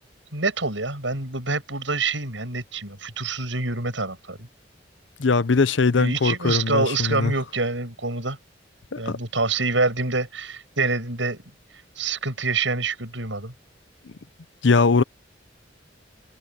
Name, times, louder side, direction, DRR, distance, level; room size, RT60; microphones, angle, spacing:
voice 1, 0.3-4.5 5.9-8.4 9.0-11.4 12.0-13.5, right 3 dB, 80° right, 7.7 m, -26 dB
voice 2, 5.2-7.3 8.9-9.2 14.6-15.0, left 4 dB, 75° left, 0.7 m, -20 dB
head